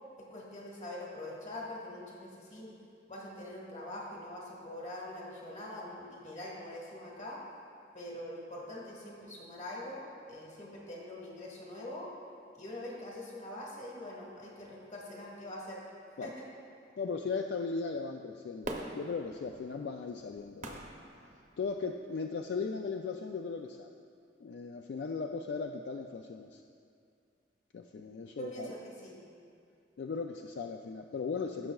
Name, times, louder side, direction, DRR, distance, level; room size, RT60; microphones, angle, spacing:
voice 1, 0.3-2.7 3.1-7.4 7.9-12.1 12.5-15.9 16.2-16.4 28.4-29.2, left 1 dB, 40° left, -3 dB, 1.6 m, -44 dB
voice 2, 17.0-20.8 21.6-23.9 24.4-26.6 27.7-28.7 30.0-31.7, left 4 dB, 65° left, 4 dB, 0.3 m, -37 dB
Fireworks, 18.6-22.0 22.5-22.6, right 1 dB, 45° right, 0.7 m, -44 dB
16.0 x 6.4 x 2.3 m, 2.4 s
head